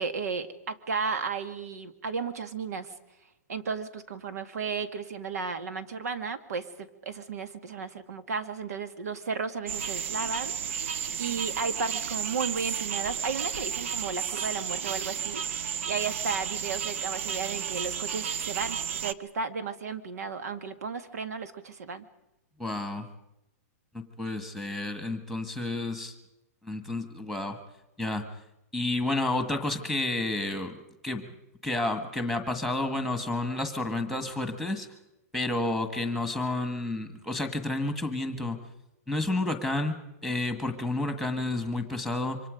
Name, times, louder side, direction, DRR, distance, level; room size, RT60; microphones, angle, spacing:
voice 1, 0.0-2.9 3.5-10.8 11.2-22.1, right 5 dB, 90° right, 11 dB, 2.1 m, -34 dB
sound 1, 9.7-19.1, right 8 dB, 55° right, 0.8 m, -33 dB
voice 2, 22.6-23.1 23.9-26.1 26.6-27.6 28.0-28.3 28.7-30.8 31.0-31.3 31.6-34.9 35.3-38.6 39.1-40.0 40.2-42.4, left 2 dB, ahead, 7 dB, 1.6 m, -30 dB
27.0 x 24.5 x 5.2 m, 0.87 s
hypercardioid pair, 170°, 8 cm